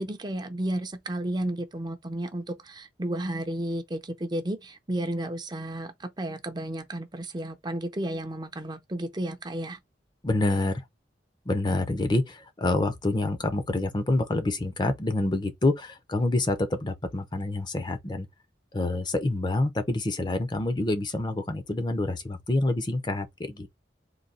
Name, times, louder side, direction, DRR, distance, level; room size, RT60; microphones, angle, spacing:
voice 1, 0.0-9.8, right 1 dB, 25° right, 0.6 m, -32 dB
voice 2, 10.2-10.8 11.5-18.3 18.7-23.7, left 2 dB, 25° left, 0.6 m, -27 dB
3.9 x 2.8 x 4.1 m
head